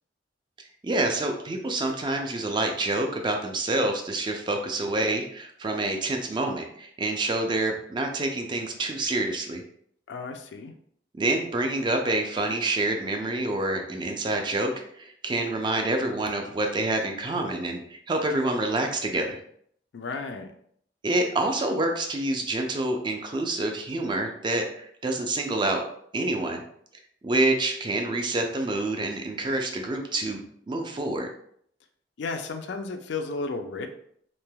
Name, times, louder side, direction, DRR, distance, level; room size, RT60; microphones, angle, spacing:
voice 1, 0.8-9.6 11.2-19.4 21.0-25.8 26.1-26.6 27.2-30.4 30.7-31.3, right 2 dB, 25° right, 3 dB, 0.3 m, -27 dB
voice 2, 10.1-10.7 19.9-20.5 32.2-33.9, left 4 dB, 70° left, 6 dB, 0.4 m, -33 dB
3.2 x 2.8 x 2.2 m, 0.65 s
head